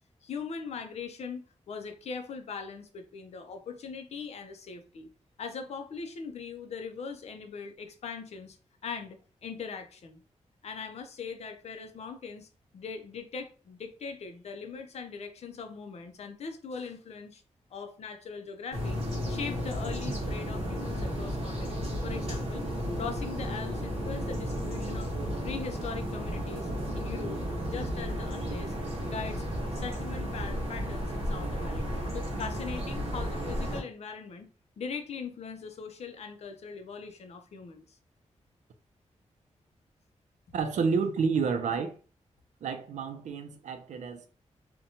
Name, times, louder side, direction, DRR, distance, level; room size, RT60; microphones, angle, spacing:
voice 1, 0.2-5.1 5.4-8.6 8.8-10.2 10.6-12.5 12.7-17.4 17.7-19.0 19.3-22.7 23.0-25.1 25.4-28.7 29.0-29.4 29.7-34.5 34.8-38.0, left 5 dB, 60° left, 0.4 m, -40 dB
sound 1, 18.7-33.8, equal, 55° right, 1.0 m, -33 dB
voice 2, 40.5-41.9 42.6-44.3, right 5 dB, 80° right, 0.4 m, -29 dB
2.8 x 2.2 x 2.6 m
wide cardioid pair, 170°, 12 cm